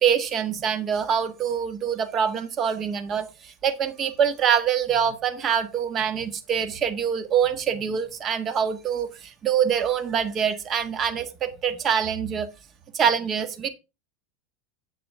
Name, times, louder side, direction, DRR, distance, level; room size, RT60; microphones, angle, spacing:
voice 1, 0.0-12.5 12.9-13.7, right 8 dB, 30° right, 1.4 m, -25 dB
10.0 x 8.3 x 3.4 m
supercardioid pair, 145°, 0 cm